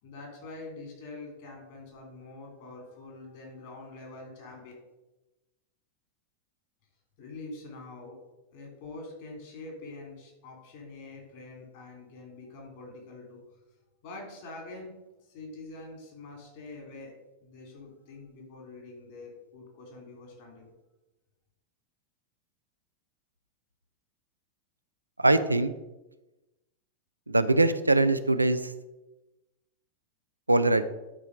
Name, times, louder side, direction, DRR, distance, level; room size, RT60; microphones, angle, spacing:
voice 1, 0.0-4.7 7.2-8.2 8.5-13.4 14.0-14.9 15.3-17.1 17.4-20.7, left 3 dB, 50° left, 1 dB, 3.1 m, -45 dB
voice 2, 25.2-25.7 27.3-28.6 30.5-30.8, right 2 dB, 85° right, 11 dB, 0.4 m, -22 dB
10.0 x 4.4 x 4.8 m, 1.0 s
figure-of-eight pair, 90°, 0 cm